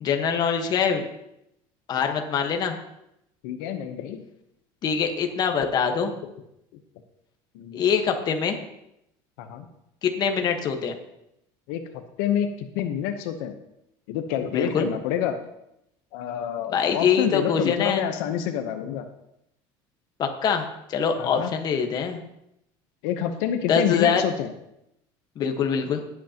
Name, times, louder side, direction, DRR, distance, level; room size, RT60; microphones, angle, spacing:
voice 1, 0.0-1.0 1.9-2.8 4.8-6.1 7.7-8.6 10.0-10.9 14.5-14.9 16.7-18.0 20.2-20.6 20.9-22.2 23.7-24.2 25.4-26.0, left 6 dB, 35° left, 5 dB, 1.3 m, -24 dB
voice 2, 3.4-4.2 7.5-7.8 9.4-9.7 11.7-11.8 12.2-13.5 14.1-15.4 16.1-19.1 21.2-21.5 23.0-24.5, left 9 dB, 85° left, 7 dB, 0.9 m, -27 dB
18.0 x 8.3 x 2.9 m, 0.82 s
cardioid pair, 145°, 11 cm